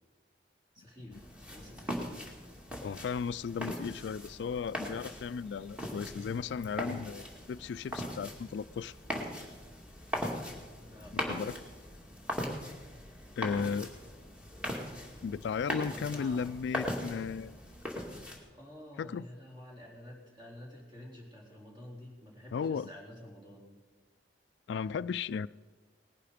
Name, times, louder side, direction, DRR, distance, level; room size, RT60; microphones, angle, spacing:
voice 1, 0.7-2.1 10.8-11.6 13.4-14.4 15.8-16.6 18.5-23.7, left 1 dB, 25° right, 3.9 m, -50 dB
sound 1, 1.1-18.4, left 1 dB, 5° right, 2.2 m, -40 dB
voice 2, 2.8-8.9 11.1-11.5 13.4-13.9 15.2-17.6 19.0-19.2 22.5-22.9 24.7-25.5, left 6 dB, 70° left, 0.3 m, -35 dB
19.0 x 11.0 x 5.1 m
head